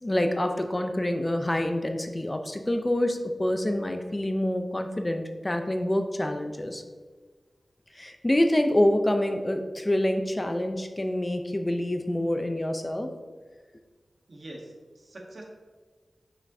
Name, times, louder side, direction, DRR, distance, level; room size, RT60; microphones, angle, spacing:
voice 1, 0.0-6.8 7.9-13.1, left 1 dB, 25° left, 6 dB, 0.5 m, -26 dB
voice 2, 14.3-15.4, right 1 dB, 65° right, 0 dB, 1.1 m, -44 dB
6.2 x 5.7 x 2.7 m, 1.4 s
wide cardioid pair, 55°, 0 cm